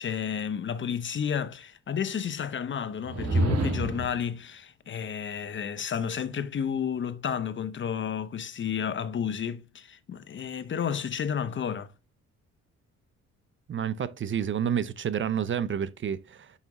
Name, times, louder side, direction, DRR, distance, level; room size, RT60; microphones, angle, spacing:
voice 1, 0.0-11.9, left 7 dB, 40° left, 0.7 m, -31 dB
sound 1, 3.0-4.2, right 1 dB, 55° right, 1.9 m, -27 dB
voice 2, 13.7-16.5, right 8 dB, 40° right, 0.6 m, -29 dB
5.9 x 5.6 x 3.0 m
cardioid pair, 90°, 30 cm